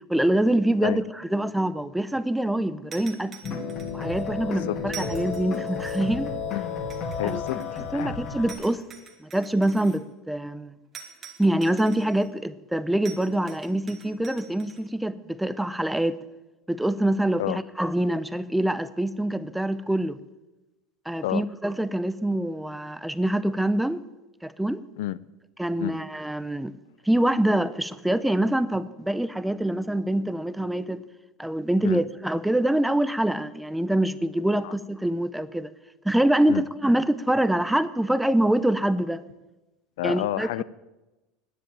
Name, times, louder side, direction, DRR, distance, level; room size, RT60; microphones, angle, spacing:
voice 1, 0.1-3.3 3.9-6.3 7.2-7.4 7.9-8.8 9.2-10.7 11.4-16.2 16.7-20.2 21.1-24.0 24.4-24.8 25.6-26.7 27.1-31.0 31.4-35.7 36.0-39.2 40.0-40.6, right 1 dB, 5° right, 0.5 m, -25 dB
sound 1, 2.9-4.2 4.9-6.2 6.9-8.0 8.5-10.0 10.9-12.3 13.0-14.8, right 7 dB, 25° right, 2.0 m, -45 dB
sound 2, 3.4-8.5, left 5 dB, 35° left, 2.1 m, -32 dB
voice 2, 7.0-8.2 17.4-17.6 21.2-21.4 25.0-25.2 25.8-26.0 31.8-32.0 34.6-34.7 36.5-36.6 40.0-40.6, left 15 dB, 80° left, 0.5 m, -30 dB
10.0 x 9.8 x 8.8 m
supercardioid pair, 140°, 0 cm